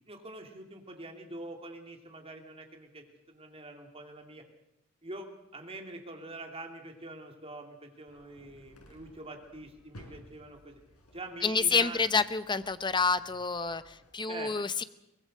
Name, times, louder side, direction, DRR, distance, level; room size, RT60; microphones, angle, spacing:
voice 1, 0.1-4.4 5.0-10.8 11.1-12.0 14.3-14.5, right 2 dB, 25° right, 3 dB, 2.9 m, -45 dB
sound 1, 8.1-14.1, equal, 85° left, 5.4 m, -56 dB
voice 2, 11.4-14.8, left 4 dB, 20° left, 13 dB, 0.8 m, -28 dB
23.5 x 19.5 x 6.6 m, 0.88 s
head